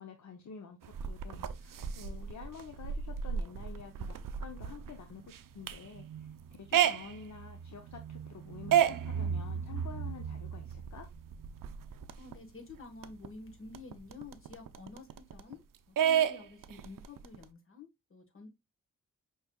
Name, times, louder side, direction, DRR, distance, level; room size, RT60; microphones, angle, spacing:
voice 1, 0.0-4.1 4.4-11.1, left 6 dB, 60° left, 0.7 m, -49 dB
sound 1, 0.8-12.3 12.7-12.8 13.0-15.5 16.0-17.4, right 9 dB, 80° right, 0.5 m, -33 dB
voice 2, 12.2-15.6 15.9-18.5, left 4 dB, 40° left, 1.3 m, -50 dB
5.7 x 3.1 x 2.2 m
cardioid pair, 60°, 32 cm